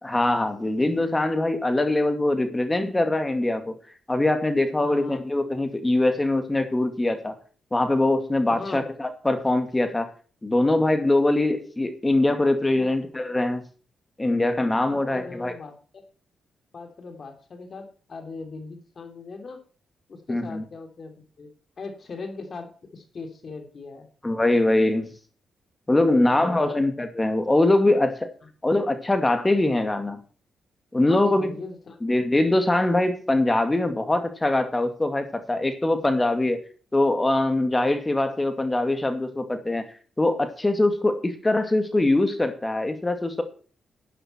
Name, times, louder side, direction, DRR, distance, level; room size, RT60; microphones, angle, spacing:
voice 1, 0.0-3.8 4.1-7.4 7.7-10.1 10.4-13.6 14.2-15.5 20.3-20.6 24.2-25.1 25.9-28.3 28.6-30.2 30.9-31.6 32.0-36.6 36.9-39.9 40.2-43.4, left 2 dB, 20° left, 7 dB, 2.3 m, -22 dB
voice 2, 4.8-5.2 8.5-8.8 12.7-12.9 14.8-16.0 16.7-19.6 20.1-21.5 21.8-24.1 26.0-26.8 31.1-32.0, left 4 dB, 50° left, 6 dB, 3.1 m, -39 dB
11.5 x 10.0 x 4.5 m, 0.40 s
supercardioid pair, 60°, 0 cm